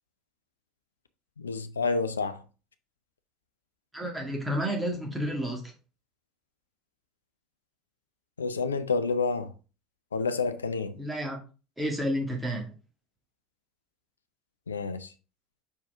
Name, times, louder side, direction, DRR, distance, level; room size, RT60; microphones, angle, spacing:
voice 1, 1.4-2.4 8.4-9.5 10.1-11.0 14.7-15.1, left 4 dB, 80° left, 0.5 m, -29 dB
voice 2, 3.9-5.6 11.0-11.4 11.8-12.7, equal, 10° right, 2.0 m, -30 dB
5.7 x 4.7 x 3.6 m
figure-of-eight pair, 65°, 0 cm